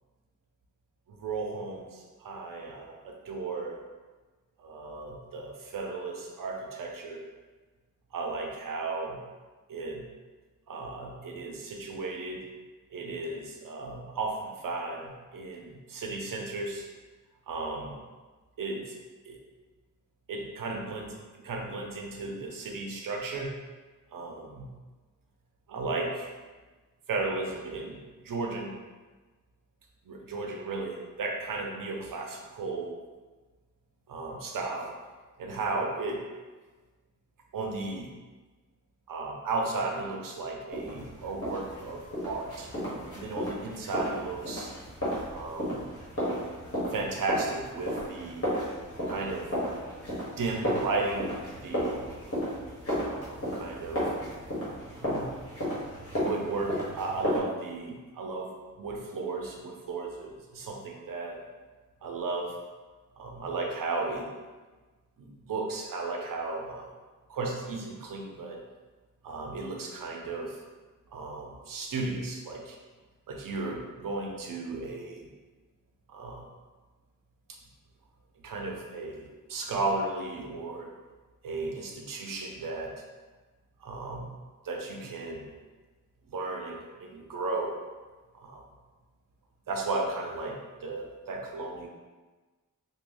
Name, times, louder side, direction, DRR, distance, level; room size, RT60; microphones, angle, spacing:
voice 1, 1.1-3.8 4.6-7.2 8.1-9.2 9.7-10.0 10.7-12.4 12.9-16.9 17.5-18.0 18.6-19.0 19.2-19.4 20.3-23.6 24.1-24.7 25.7-26.3 27.1-28.7 30.0-33.0 34.1-34.9 35.4-36.2 37.5-38.1 39.1-44.7 45.3-45.8 46.9-48.5 49.1-49.5 50.4-52.1 53.1-54.1 55.0-55.4 56.1-61.4 62.0-62.6 63.2-64.3 65.2-67.0 67.3-68.6 69.2-70.6 71.1-72.8 73.3-75.3 76.1-76.5 78.4-80.9 81.4-83.0 83.8-84.3 84.6-85.5 86.3-87.8 88.3-88.6 89.7-91.9, right 3 dB, 75° right, 1 dB, 0.6 m, -35 dB
sound 1, 40.7-57.4, equal, 40° left, 1.3 m, -34 dB
3.0 x 2.2 x 3.7 m, 1.3 s
wide cardioid pair, 105°, 33 cm